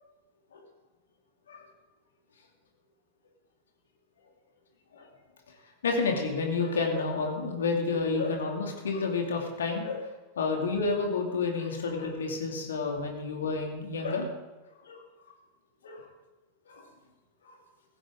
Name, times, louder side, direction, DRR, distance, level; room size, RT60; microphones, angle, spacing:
voice 1, 5.8-10.1 10.4-14.3 14.8-15.0 15.8-16.1 16.7-16.9 17.4-17.6, left 4 dB, 65° left, 2 dB, 2.6 m, -30 dB
16.0 x 16.0 x 3.8 m, 1.2 s
figure-of-eight pair, 90°, 0 cm